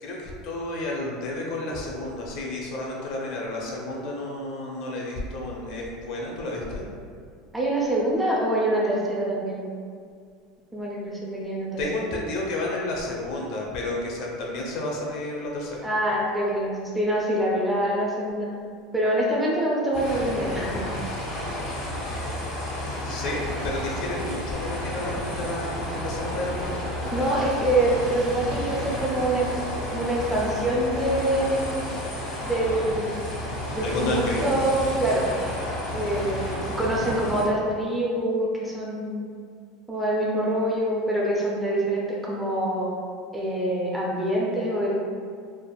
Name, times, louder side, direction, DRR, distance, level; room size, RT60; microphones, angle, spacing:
voice 1, 0.0-6.8 11.8-15.9 23.0-26.8 33.8-34.5, left 2 dB, 55° left, -2 dB, 0.6 m, -31 dB
voice 2, 7.5-9.6 10.7-11.8 15.8-18.5 18.9-20.8 24.1-24.3 27.0-29.5 29.9-31.8 32.4-33.2 33.7-35.3 35.9-36.4 36.8-39.2 39.9-42.9 43.3-44.9, right 1 dB, 5° right, -5 dB, 0.4 m, -25 dB
sound 1, 19.9-37.4, left 1 dB, 90° left, 1.3 m, -31 dB
3.3 x 2.0 x 2.3 m, 2.1 s
supercardioid pair, 150°, 0 cm